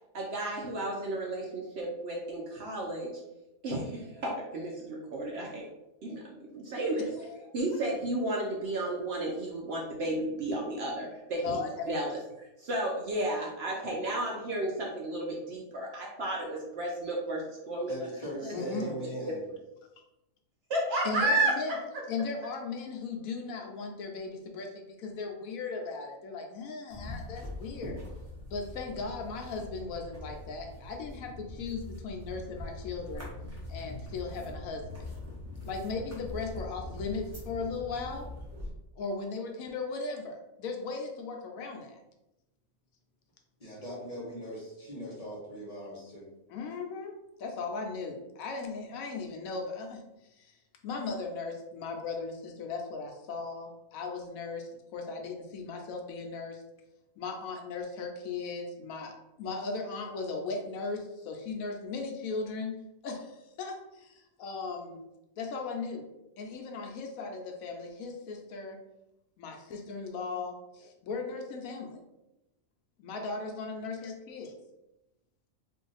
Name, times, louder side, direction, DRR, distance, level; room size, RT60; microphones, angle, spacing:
voice 1, 0.1-3.2 3.6-5.7 6.0-7.1 7.5-12.2 12.6-18.1 18.4-19.0 19.2-19.3 20.7-21.8, right 1 dB, 60° right, -2 dB, 0.7 m, -32 dB
voice 2, 7.0-7.4 11.3-12.1 18.5-18.9 21.0-21.8 22.1-28.0 28.5-33.3 33.7-35.1 35.6-38.3 39.0-42.0 46.5-47.1 47.4-50.0 50.4-50.6 50.8-56.6 57.2-62.8 63.0-65.0 65.4-66.1 66.4-68.8 69.4-72.0 73.0-74.5, left 4 dB, 80° left, 2 dB, 1.0 m, -37 dB
voice 3, 17.9-19.4 43.6-46.3, equal, 30° left, -4 dB, 0.9 m, -40 dB
sound 1, 26.9-38.7, left 2 dB, 15° right, 0.8 m, -43 dB
2.8 x 2.5 x 3.9 m, 0.93 s
omnidirectional pair, 1.5 m